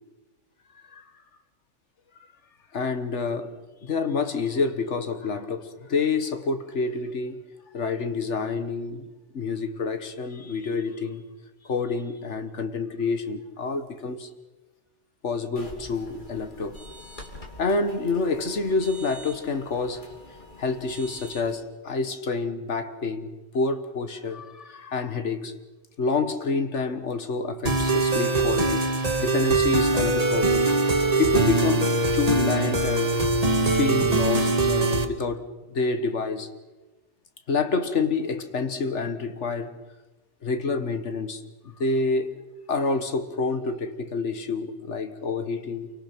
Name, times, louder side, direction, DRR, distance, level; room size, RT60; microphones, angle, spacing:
voice 1, 2.7-7.4 7.7-9.1 9.3-11.2 11.6-14.3 15.2-16.8 17.6-20.0 20.6-25.5 26.0-28.9 29.1-30.7 31.2-36.5 37.5-39.8 40.4-42.3 42.7-45.9, left 4 dB, 75° left, 1.7 m, -28 dB
sound 1, 15.6-21.6, left 1 dB, 40° left, 3.3 m, -44 dB
sound 2, 27.7-35.0, right 3 dB, 35° right, 1.6 m, -22 dB
28.5 x 24.5 x 6.1 m
omnidirectional pair, 1.2 m